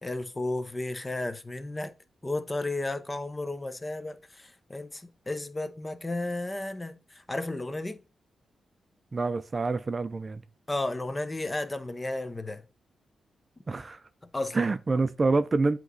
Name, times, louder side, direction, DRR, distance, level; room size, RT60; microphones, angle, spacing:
voice 1, 0.0-1.9 2.2-6.9 7.3-8.0 10.7-12.6 14.3-14.7, left 2 dB, 25° left, 0.7 m, -33 dB
voice 2, 9.1-10.4 13.7-14.0 14.5-15.8, right 3 dB, 35° right, 0.4 m, -26 dB
7.7 x 3.0 x 4.0 m
cardioid pair, 60°, 0 cm